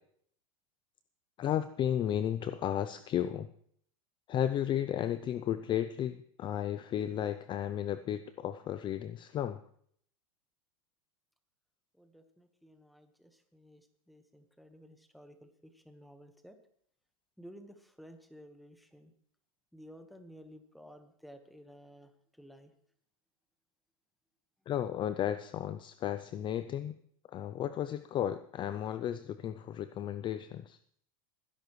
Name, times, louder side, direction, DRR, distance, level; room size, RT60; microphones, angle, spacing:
voice 1, 1.4-3.5 4.3-9.6 24.7-27.0 27.3-30.8, left 10 dB, 25° left, 13 dB, 0.5 m, -34 dB
voice 2, 12.0-16.6 17.4-19.1 19.7-22.1 22.4-22.7, equal, ahead, 7 dB, 1.3 m, -54 dB
20.5 x 11.0 x 3.2 m, 0.64 s
supercardioid pair, 125°, 18 cm